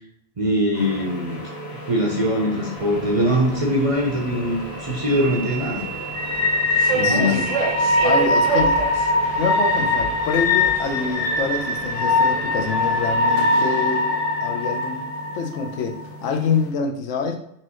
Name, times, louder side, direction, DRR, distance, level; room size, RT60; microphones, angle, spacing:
voice 1, 0.4-1.4 1.9-5.8 6.9-7.5, equal, 40° right, -2 dB, 0.6 m, -22 dB
sound 1, 0.8-16.7, left 2 dB, 55° left, 1.1 m, -23 dB
Subway metro underground, 2.8-13.3, right 5 dB, 85° right, 1.2 m, -30 dB
voice 2, 6.9-7.5 8.0-8.8 9.4-14.1 14.4-15.0 15.3-17.4, left 5 dB, 80° left, 4 dB, 1.0 m, -26 dB
4.5 x 3.0 x 3.0 m, 0.74 s
omnidirectional pair, 1.3 m